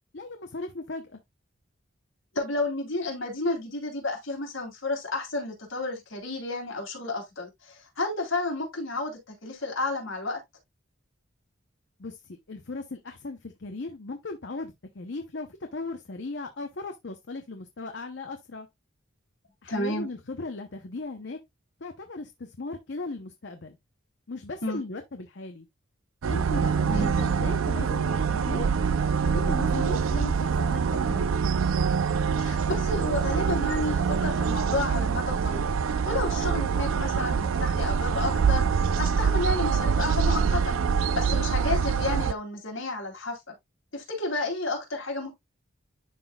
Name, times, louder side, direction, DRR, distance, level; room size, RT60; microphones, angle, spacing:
voice 1, 0.1-1.2 12.0-18.7 19.6-21.4 21.8-23.8 24.3-25.7 26.3-28.7 29.2-31.3, left 3 dB, 60° left, 0.7 m, -37 dB
voice 2, 2.3-10.4 19.7-20.1 24.6-24.8 26.9-27.1 32.4-35.7 36.0-43.4 43.9-45.3, left 2 dB, 75° left, 3.2 m, -31 dB
sound 1, 26.2-42.3, right 6 dB, 80° right, 0.4 m, -25 dB
11.5 x 4.0 x 2.3 m
head